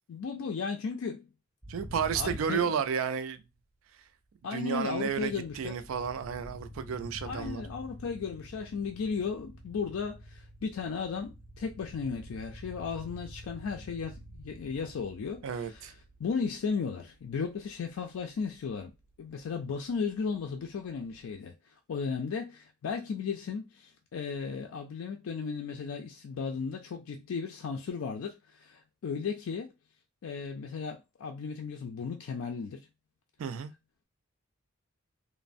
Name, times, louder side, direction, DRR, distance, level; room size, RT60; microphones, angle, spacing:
voice 1, 0.1-1.3 2.1-2.8 4.4-5.7 7.2-18.9 19.2-21.6 21.9-29.7 30.2-32.9, left 5 dB, 80° left, 0.4 m, -35 dB
sound 1, 1.6-3.4 4.4-21.3, equal, 15° right, 0.5 m, -49 dB
voice 2, 1.7-3.4 4.5-7.6 15.4-15.9 33.4-33.7, right 7 dB, 75° right, 0.3 m, -32 dB
3.1 x 2.0 x 2.5 m
head